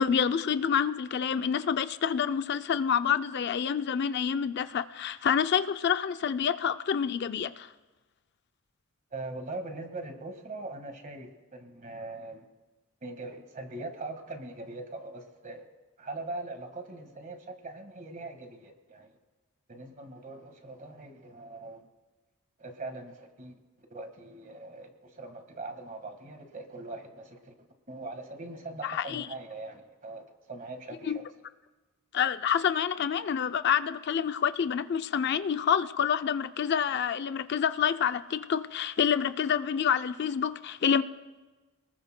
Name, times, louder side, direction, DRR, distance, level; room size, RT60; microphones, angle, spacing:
voice 1, 0.0-7.7 28.8-29.3 31.1-31.2 32.1-41.0, left 7 dB, 50° left, 0.4 m, -27 dB
voice 2, 9.1-12.5 13.0-15.6 16.0-19.1 19.7-21.9 22.6-23.5 23.9-31.2, right 2 dB, 40° right, 1.6 m, -41 dB
28.0 x 20.0 x 2.2 m
head